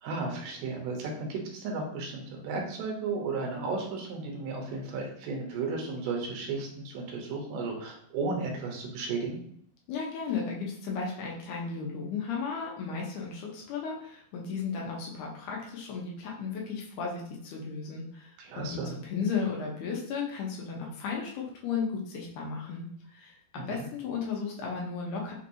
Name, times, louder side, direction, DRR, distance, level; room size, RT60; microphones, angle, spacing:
voice 1, 0.0-9.4 18.4-18.9 23.5-23.9, right 4 dB, 70° right, 1 dB, 1.8 m, -34 dB
voice 2, 9.9-18.3 18.6-25.3, left 5 dB, 75° left, -2 dB, 2.0 m, -35 dB
5.3 x 2.9 x 2.6 m, 0.64 s
omnidirectional pair, 4.0 m